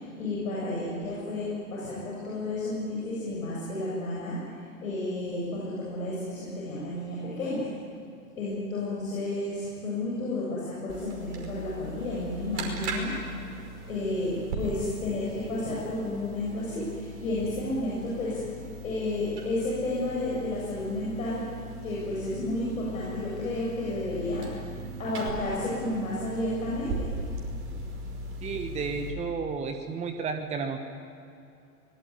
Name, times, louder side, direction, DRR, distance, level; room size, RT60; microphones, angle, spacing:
voice 1, 0.0-4.5 4.8-7.7 8.3-13.3 13.9-18.5 18.8-21.4 21.8-24.6 25.0-27.1, left 2 dB, 60° left, -6 dB, 8.0 m, -31 dB
sound 1, 10.9-29.1, right 2 dB, 50° right, 5.5 m, -39 dB
voice 2, 28.4-30.8, right 5 dB, 15° right, 6 dB, 1.3 m, -32 dB
23.5 x 20.0 x 9.7 m, 2.5 s
figure-of-eight pair, 100°, 46 cm